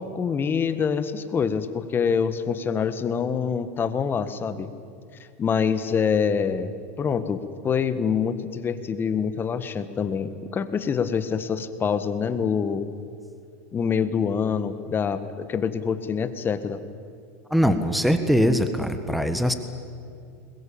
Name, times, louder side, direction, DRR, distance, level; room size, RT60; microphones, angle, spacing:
voice 1, 0.0-4.7 5.4-6.7 7.0-12.9 13.7-16.8, left 6 dB, 25° left, 11 dB, 1.6 m, -25 dB
voice 2, 17.5-19.5, equal, ahead, 9 dB, 1.5 m, -21 dB
22.0 x 21.0 x 8.8 m, 2.5 s
hypercardioid pair, 105°, 8 cm